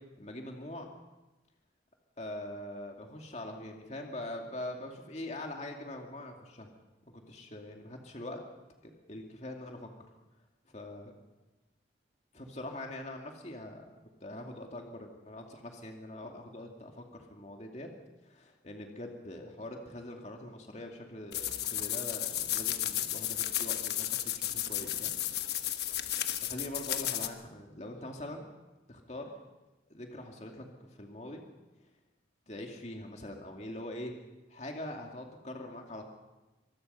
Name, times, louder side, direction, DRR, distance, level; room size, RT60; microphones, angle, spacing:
voice 1, 0.2-0.9 2.2-6.7 7.1-8.4 8.8-9.9 10.7-11.1 12.3-13.9 14.2-17.9 18.2-25.1 25.9-28.5 28.9-29.3 29.9-31.4 32.5-34.1 34.5-36.0, left 1 dB, 40° left, 2 dB, 2.4 m, -43 dB
sound 1, 21.3-27.3, left 12 dB, 65° left, 1.2 m, -33 dB
25.5 x 20.0 x 5.6 m, 1.1 s
head